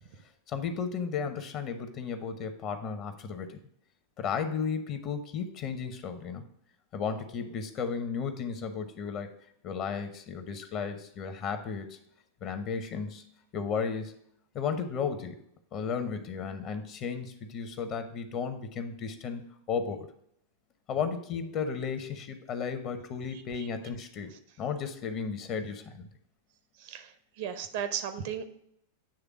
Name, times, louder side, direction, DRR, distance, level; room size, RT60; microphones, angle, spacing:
voice 1, 0.5-3.6 4.2-6.4 6.9-9.3 9.6-12.0 12.4-13.2 13.5-14.1 14.5-15.4 15.7-19.4 19.7-20.1 20.9-26.1, left 6 dB, 35° left, 8 dB, 0.8 m, -34 dB
voice 2, 26.8-27.1 27.4-28.5, right 8 dB, 50° right, 9 dB, 0.7 m, -34 dB
8.8 x 3.4 x 5.0 m, 0.69 s
figure-of-eight pair, 90°, 0 cm